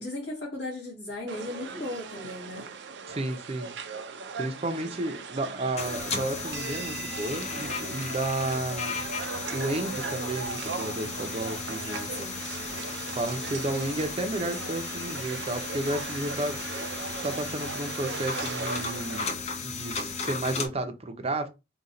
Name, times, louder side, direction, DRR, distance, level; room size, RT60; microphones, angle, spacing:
voice 1, 0.0-2.7 11.9-12.4, left 2 dB, 75° left, 2.0 m, -36 dB
sound 1, 1.3-19.3, right 5 dB, 80° right, 0.6 m, -38 dB
voice 2, 3.1-3.7 4.4-9.1 9.5-12.1 13.1-16.6 17.2-19.3 19.6-21.5, right 2 dB, 35° right, 0.7 m, -32 dB
sound 2, 5.8-20.7, left 5 dB, 40° left, 0.7 m, -35 dB
3.8 x 2.4 x 4.1 m
head